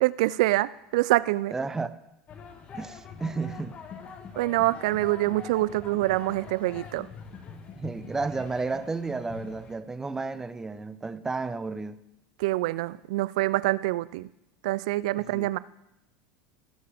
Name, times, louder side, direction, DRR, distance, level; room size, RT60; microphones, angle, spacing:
voice 1, 0.0-1.5 4.4-7.1 12.4-14.3 14.6-15.6, right 18 dB, 75° right, 19 dB, 0.3 m, -25 dB
voice 2, 1.5-2.0 2.8-3.8 7.8-12.0 15.3-15.5, right 4 dB, 15° right, 12 dB, 0.7 m, -32 dB
sound 1, 2.3-9.7, left 6 dB, 40° left, 1.4 m, -44 dB
19.0 x 6.6 x 3.5 m, 0.85 s
hypercardioid pair, 95°, 4 cm